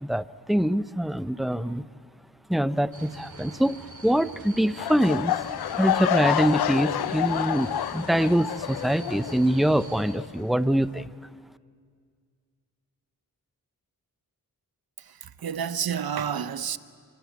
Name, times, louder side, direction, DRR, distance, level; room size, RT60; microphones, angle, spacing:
voice 1, 0.0-1.8 2.5-5.3 5.7-11.1, equal, ahead, 0.6 m, -24 dB
sound 1, 2.9-10.2, right 2 dB, 50° right, 3.2 m, -45 dB
sound 2, 4.8-9.8 10.1-10.4 10.9-11.0, left 11 dB, 80° left, 0.6 m, -28 dB
voice 2, 15.0-16.8, right 8 dB, 75° right, 0.9 m, -30 dB
26.0 x 24.0 x 8.2 m
cardioid pair, 65°, 37 cm